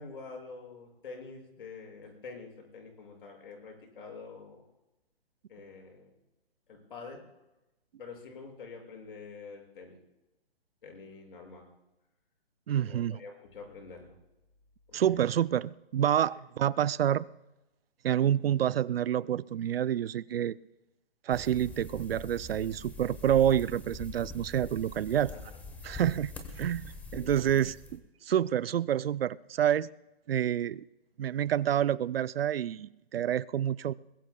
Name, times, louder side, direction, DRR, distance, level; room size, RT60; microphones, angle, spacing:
voice 1, 0.0-4.6 5.5-6.1 6.7-7.2 8.0-10.0 10.8-11.7 12.8-14.1 14.9-15.2 25.1-25.6 25.8-25.9, left 4 dB, 60° left, 6.3 m, -47 dB
voice 2, 12.7-13.2 14.9-17.3 18.0-20.6 21.3-25.3 25.8-26.3 26.6-28.0 28.3-29.9 30.3-30.8 31.2-33.9, right 10 dB, 70° right, 0.5 m, -28 dB
sound 1, 21.3-28.0, left 3 dB, 5° left, 1.1 m, -44 dB
22.0 x 21.5 x 2.3 m
hypercardioid pair, 150°, 31 cm